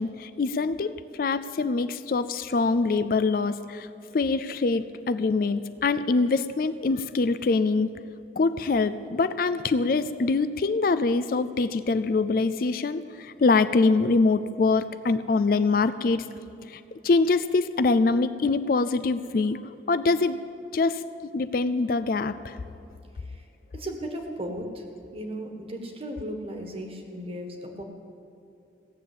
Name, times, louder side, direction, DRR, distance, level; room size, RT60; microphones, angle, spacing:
voice 1, 0.0-3.9 4.1-7.9 8.4-16.2 17.0-19.6 19.9-20.4 20.7-21.0 21.3-22.3, left 3 dB, 50° left, 13 dB, 0.4 m, -24 dB
voice 2, 23.7-24.9 25.1-27.8, equal, 30° right, 3 dB, 1.5 m, -36 dB
16.5 x 7.4 x 8.5 m, 2.6 s
head